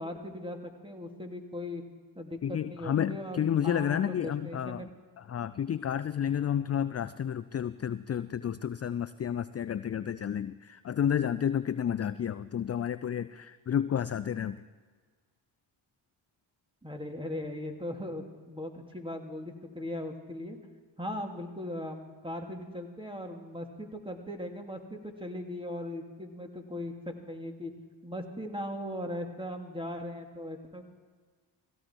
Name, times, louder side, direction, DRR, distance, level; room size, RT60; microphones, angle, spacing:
voice 1, 0.0-1.8 2.2-4.9 16.8-20.6 21.0-27.7 28.0-30.9, left 1 dB, 10° right, 3 dB, 2.4 m, -39 dB
voice 2, 2.4-4.8 5.2-14.6, left 9 dB, 30° left, 14 dB, 0.5 m, -31 dB
18.0 x 16.0 x 4.5 m, 1.5 s
supercardioid pair, 55°, 49 cm